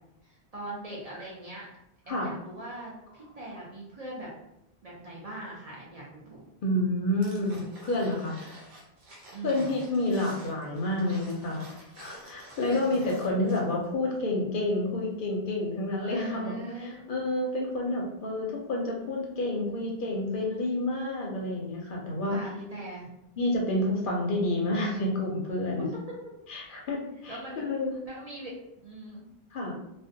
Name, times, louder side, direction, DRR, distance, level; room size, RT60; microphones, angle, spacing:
voice 1, 0.2-1.7 2.1-4.3 4.8-6.4 9.3-9.8 12.7-13.1 16.0-17.1 22.3-23.1 25.7-26.2 27.3-27.7 28.1-28.6 28.8-29.2, right 1 dB, 45° right, -5 dB, 0.5 m, -40 dB
voice 2, 6.6-8.4 9.4-11.7 12.0-22.4 23.4-25.9 26.5-27.9 29.5-29.7, left 1 dB, 60° left, -1 dB, 0.6 m, -29 dB
sound 1, 7.2-13.8 14.1-14.2, right 1 dB, 80° right, 1.0 m, -50 dB
2.5 x 2.1 x 2.5 m, 0.85 s
omnidirectional pair, 1.0 m